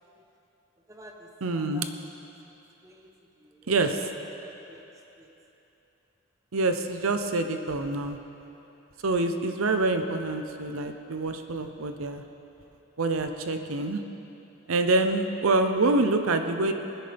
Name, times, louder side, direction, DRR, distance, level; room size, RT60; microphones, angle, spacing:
voice 1, 0.9-2.1 2.8-3.7 4.4-4.9 5.2-5.3 14.6-14.8, right 1 dB, 15° right, 1 dB, 0.9 m, -51 dB
voice 2, 1.4-1.9 3.7-4.1 6.5-8.2 9.0-12.2 13.0-14.0 14.7-16.7, right 2 dB, 90° right, 7 dB, 0.7 m, -26 dB
20.0 x 10.5 x 3.5 m, 2.9 s
head